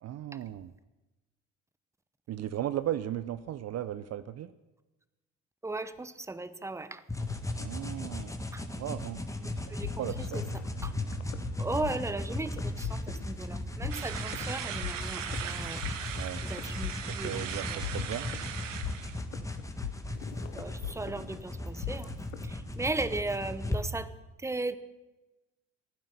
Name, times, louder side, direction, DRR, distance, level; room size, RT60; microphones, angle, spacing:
voice 1, 0.0-0.7 2.3-4.5 7.6-8.3 8.8-9.6 10.0-10.4 16.2-16.4 17.1-18.3, right 12 dB, 45° right, 14 dB, 0.6 m, -36 dB
voice 2, 5.6-7.0 8.5-8.6 9.4-10.1 10.3-10.5 10.8-10.9 11.6-15.8 16.4-17.3 17.7-17.9 20.5-22.1 22.4-24.1 24.4-24.8, right 2 dB, 10° right, 14 dB, 0.9 m, -36 dB
sound 1, 7.1-23.8, left 2 dB, 10° left, 1.6 m, -37 dB
sound 2, 9.5-22.5, left 11 dB, 85° left, 0.9 m, -41 dB
sound 3, 13.9-19.2, right 9 dB, 90° right, 0.9 m, -39 dB
16.0 x 9.4 x 6.8 m, 1.1 s
hypercardioid pair, 60°, 37 cm